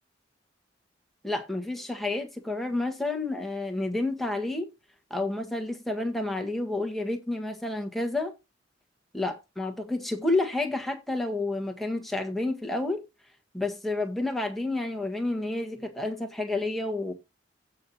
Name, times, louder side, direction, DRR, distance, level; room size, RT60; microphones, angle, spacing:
voice 1, 1.2-4.7 5.1-8.3 9.1-13.0 13.5-17.1, left 2 dB, ahead, 1.5 m, -30 dB
15.5 x 5.6 x 2.8 m
head